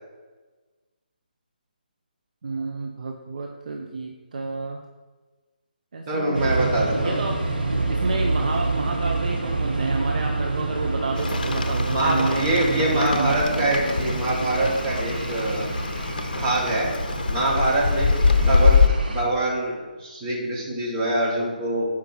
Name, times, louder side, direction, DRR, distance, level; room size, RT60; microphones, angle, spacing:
voice 1, 2.4-4.8 5.9-6.6 7.0-7.4 7.9-12.5 12.9-13.4, right 3 dB, 55° right, 2 dB, 0.7 m, -30 dB
voice 2, 6.1-7.2 11.9-15.6 16.3-16.9 17.3-21.9, right 1 dB, 25° right, -3 dB, 1.7 m, -24 dB
sound 1, 6.3-19.2, right 3 dB, 80° right, 1.5 m, -28 dB
Rain, 11.2-18.9, left 5 dB, 60° left, 0.6 m, -24 dB
7.0 x 4.9 x 4.5 m, 1.3 s
figure-of-eight pair, 145°, 5 cm